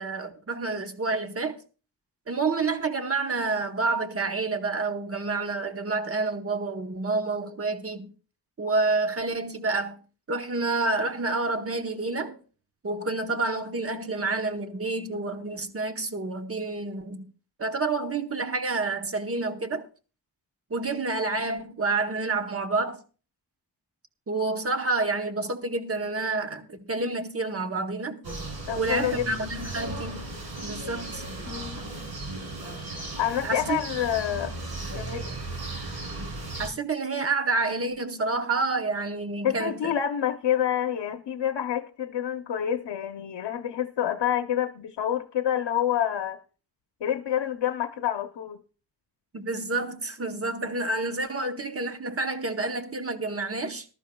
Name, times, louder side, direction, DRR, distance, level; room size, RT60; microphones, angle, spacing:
voice 1, 0.0-1.6 2.3-8.1 8.6-10.0 10.3-12.4 12.8-17.3 17.6-19.9 20.7-23.0 24.3-28.2 28.8-30.3 30.6-31.2 33.4-33.8 36.6-39.9 49.3-53.9, right 3 dB, 35° right, 1.0 m, -29 dB
sound 1, 28.2-36.7, right 2 dB, 65° right, 3.1 m, -36 dB
voice 2, 28.7-29.3 31.5-31.8 33.2-34.6 34.9-35.3 39.4-46.4 47.0-48.6, left 10 dB, 80° left, 0.8 m, -28 dB
20.0 x 12.0 x 2.3 m
wide cardioid pair, 160°, 42 cm